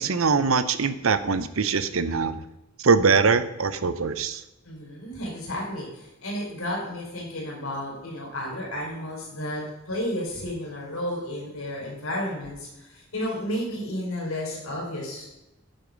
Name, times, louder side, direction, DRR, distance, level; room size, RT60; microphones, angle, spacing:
voice 1, 0.0-2.4 2.8-4.4, right 5 dB, 80° right, 13 dB, 0.8 m, -22 dB
voice 2, 4.6-15.3, left 1 dB, 80° left, -3 dB, 4.6 m, -32 dB
9.8 x 8.3 x 5.3 m, 0.93 s
head